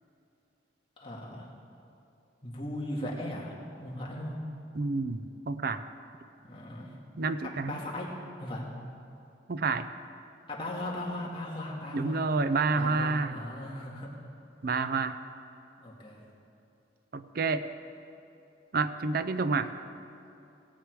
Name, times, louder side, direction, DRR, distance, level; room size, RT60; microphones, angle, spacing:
voice 1, 1.0-1.5 2.4-3.5 3.8-4.4 6.5-6.9 7.4-8.1 8.4-8.6 10.5-12.3 12.7-14.1 15.8-16.2, left 1 dB, 30° left, -3 dB, 2.0 m, -37 dB
voice 2, 4.7-5.9 7.2-7.8 9.5-9.9 11.9-13.4 14.6-15.2 17.1-17.6 18.7-19.7, right 4 dB, 55° right, 11 dB, 0.5 m, -29 dB
17.5 x 8.4 x 4.8 m, 2.8 s
head